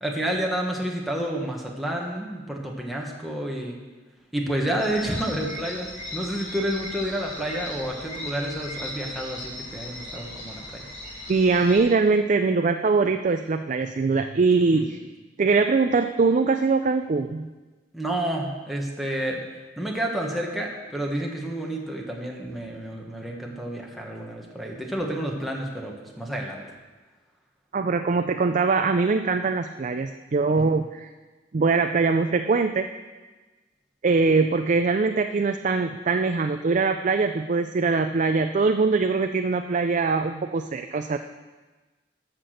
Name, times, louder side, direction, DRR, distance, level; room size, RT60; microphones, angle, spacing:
voice 1, 0.0-3.8 4.3-10.9 14.7-14.9 17.9-19.4 19.8-26.7 30.6-30.7, right 1 dB, ahead, -2 dB, 1.3 m, -30 dB
sound 1, 4.8-11.8, left 1 dB, 40° left, 2.7 m, -37 dB
voice 2, 11.3-15.0 15.4-17.5 27.7-31.1 31.5-32.9 34.0-41.2, right 4 dB, 45° right, 7 dB, 0.4 m, -22 dB
13.5 x 6.0 x 6.4 m, 1.2 s
head